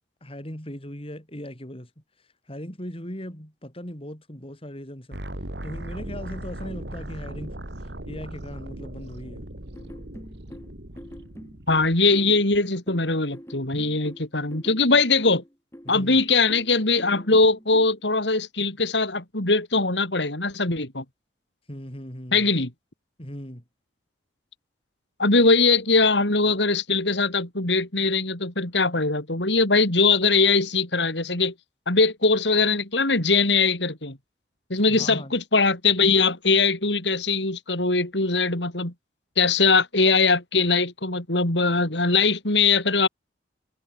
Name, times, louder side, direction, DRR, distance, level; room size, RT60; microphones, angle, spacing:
voice 1, 0.2-1.9 2.5-5.2 5.6-7.6 8.1-9.5 15.8-16.2 21.7-22.5 23.2-23.6 34.9-35.3, equal, 30° left, 7.5 m, -38 dB
sound 1, 5.1-11.9, right 1 dB, 70° right, 3.5 m, -38 dB
sound 2, 9.7-18.0, equal, 15° left, 7.3 m, -44 dB
voice 2, 11.7-15.4 15.9-21.0 22.3-22.7 25.2-31.5 31.9-34.2 34.7-38.9 39.4-43.1, left 3 dB, 80° left, 4.5 m, -21 dB
head